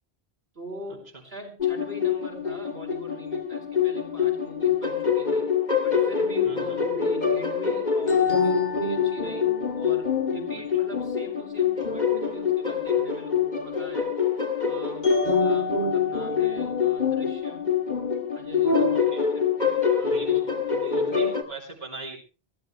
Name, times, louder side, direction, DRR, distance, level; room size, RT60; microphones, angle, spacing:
voice 1, 0.5-5.5 5.8-14.1 14.6-17.8 18.3-19.1 19.3-20.4 20.7-21.2, right 1 dB, 70° right, 1 dB, 4.7 m, -42 dB
sound 1, 1.6-21.4, left 6 dB, 45° left, 2.4 m, -25 dB
voice 2, 6.4-6.8 15.1-15.2 18.9-19.2 20.0-20.5 20.8-22.2, right 2 dB, 40° right, -1 dB, 3.3 m, -38 dB
22.0 x 15.5 x 3.2 m, 0.35 s
omnidirectional pair, 1.1 m